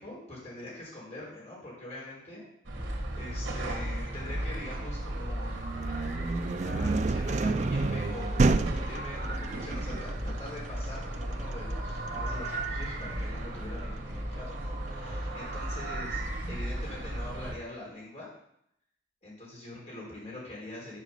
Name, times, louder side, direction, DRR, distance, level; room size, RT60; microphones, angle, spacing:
voice 1, 0.0-2.4 2.8-5.8 6.6-16.2 16.5-18.3 19.2-21.0, left 1 dB, 35° left, -5 dB, 3.9 m, -43 dB
sound 1, 2.6-17.5, right 1 dB, 85° right, 1.6 m, -36 dB
sound 2, 4.1-17.3, right 3 dB, 60° right, 2.2 m, -43 dB
sound 3, 5.5-15.3, right 3 dB, 40° right, 0.3 m, -31 dB
7.5 x 5.0 x 6.6 m, 0.73 s
head